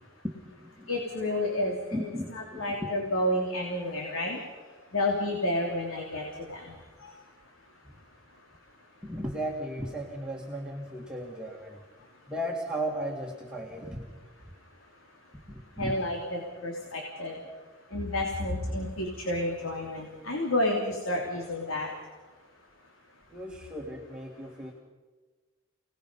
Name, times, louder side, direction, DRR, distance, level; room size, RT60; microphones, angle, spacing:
voice 1, 0.9-4.4 4.9-6.7 7.0-7.1 15.8-17.3 17.9-21.9, left 1 dB, 85° left, 0 dB, 3.2 m, -30 dB
voice 2, 1.9-2.9 9.0-11.8 12.3-14.0 15.5-16.0 23.3-24.7, equal, 5° right, -2 dB, 1.9 m, -35 dB
30.0 x 19.0 x 5.5 m, 1.3 s
head